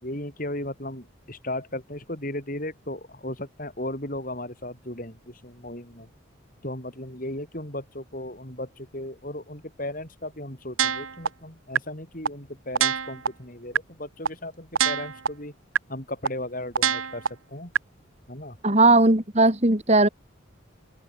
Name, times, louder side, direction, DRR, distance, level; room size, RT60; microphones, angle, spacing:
voice 1, 0.0-6.1 6.6-15.5 15.9-17.7 18.3-18.6, left 1 dB, 40° left, 6.2 m, -36 dB
sound 1, 10.8-11.3 11.7-11.8 12.2-12.3 12.7-13.3 13.7-13.8 14.2-14.3 14.7-15.3 15.7-15.8 16.2-16.3 16.7-17.3 17.7-17.8, right 7 dB, 85° right, 2.5 m, -23 dB
voice 2, 18.6-20.1, right 2 dB, 30° right, 2.7 m, -18 dB
open air
head